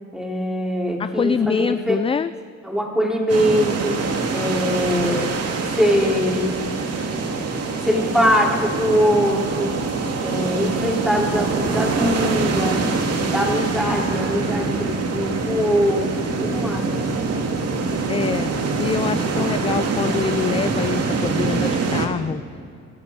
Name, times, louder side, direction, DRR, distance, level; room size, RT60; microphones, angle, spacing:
voice 1, 0.1-2.0 2.6-5.3 5.6-6.5 7.8-9.7 10.2-12.8 13.3-16.9, equal, ahead, -3 dB, 4.3 m, -22 dB
voice 2, 1.0-2.3 18.1-22.4, left 6 dB, 20° left, 14 dB, 0.3 m, -25 dB
sound 1, 3.3-22.1, right 4 dB, 55° right, 2.4 m, -24 dB
24.5 x 13.5 x 4.1 m, 2.4 s
cardioid pair, 90°, 30 cm